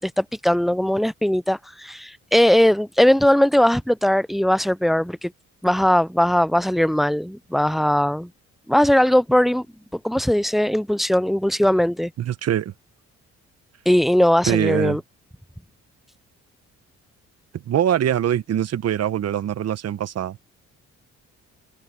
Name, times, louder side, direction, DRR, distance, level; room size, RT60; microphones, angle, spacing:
voice 1, 0.0-5.3 5.6-8.3 8.7-9.7 10.0-12.1 13.9-15.0, left 1 dB, ahead, 0.4 m, -19 dB
voice 2, 12.2-12.7 14.5-15.0 17.5-20.4, right 10 dB, 55° right, 1.0 m, -23 dB
cardioid pair, 90°, 30 cm